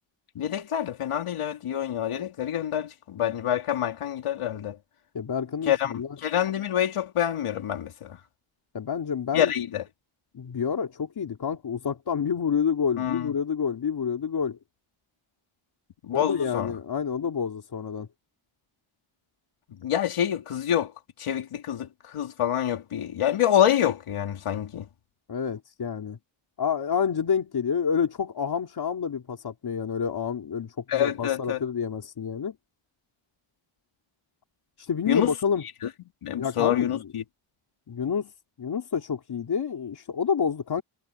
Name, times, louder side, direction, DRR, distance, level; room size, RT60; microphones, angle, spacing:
voice 1, 0.3-4.8 5.7-5.9 6.2-8.2 9.3-9.8 13.0-13.3 16.0-16.7 19.8-20.9 21.2-24.8 30.9-31.6 35.1-35.3 36.2-37.2, left 10 dB, 90° left, 3.1 m, -26 dB
voice 2, 5.1-6.1 8.7-9.5 10.3-14.6 16.1-18.1 25.3-26.2 26.6-32.5 34.8-35.6 36.4-37.1 37.9-38.3 38.6-40.8, left 7 dB, 50° left, 3.3 m, -28 dB
wide cardioid pair, 170°, 49 cm